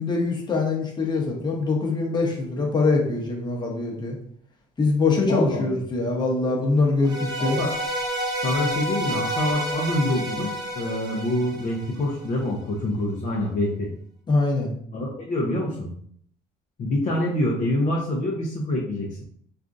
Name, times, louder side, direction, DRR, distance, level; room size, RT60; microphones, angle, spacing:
voice 1, 0.0-4.1 4.8-7.6 14.3-14.7, left 3 dB, 25° left, -1 dB, 0.9 m, -23 dB
voice 2, 5.3-5.8 7.4-7.7 8.4-13.9 14.9-15.9 16.8-19.2, left 1 dB, 50° left, -2 dB, 0.6 m, -26 dB
sound 1, 7.0-12.3, right 1 dB, 25° right, 0.7 m, -29 dB
3.6 x 2.5 x 2.5 m, 0.62 s
cardioid pair, 110°, 17 cm